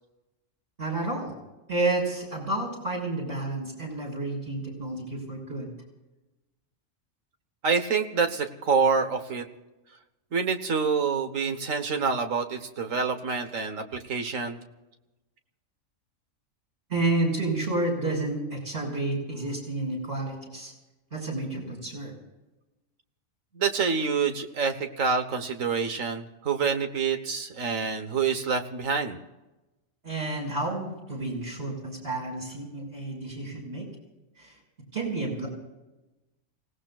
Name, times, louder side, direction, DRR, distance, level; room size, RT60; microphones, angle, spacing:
voice 1, 0.8-1.3 1.7-5.7 16.9-20.7 21.1-22.2 30.0-33.9 34.4-34.5 34.9-35.5, right 2 dB, 45° right, -2 dB, 6.6 m, -30 dB
voice 2, 7.6-9.4 10.3-14.6 23.6-29.2, right 5 dB, 80° right, 7 dB, 1.7 m, -27 dB
29.5 x 18.0 x 2.4 m, 1.0 s
omnidirectional pair, 1.4 m